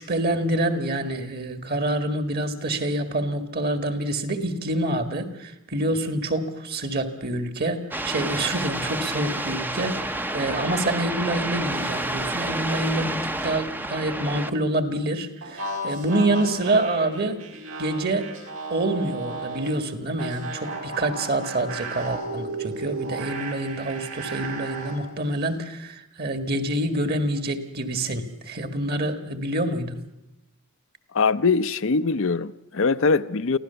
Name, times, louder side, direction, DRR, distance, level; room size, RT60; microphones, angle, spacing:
voice 1, 0.0-17.4 17.8-18.3 18.7-30.0, right 1 dB, 50° right, 1.9 m, -27 dB
sound 1, 7.9-14.5, right 1 dB, 10° right, 0.6 m, -29 dB
sound 2, 15.4-19.7 20.2-25.0, right 3 dB, 75° right, 5.0 m, -34 dB
voice 2, 31.1-33.6, left 4 dB, 65° left, 0.6 m, -22 dB
24.0 x 16.0 x 7.0 m
head